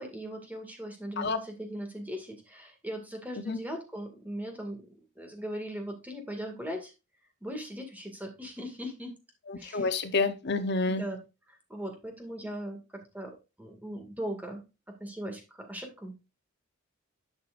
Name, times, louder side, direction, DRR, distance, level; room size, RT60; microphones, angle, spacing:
voice 1, 0.0-4.8 5.2-6.9 7.4-9.1 9.6-9.9 10.9-11.2 11.5-13.3 13.6-14.6 15.0-16.2, equal, 10° right, 3 dB, 2.0 m, -39 dB
voice 2, 9.5-11.0, left 3 dB, 55° left, 10 dB, 0.8 m, -28 dB
11.0 x 6.0 x 2.5 m, 0.28 s
head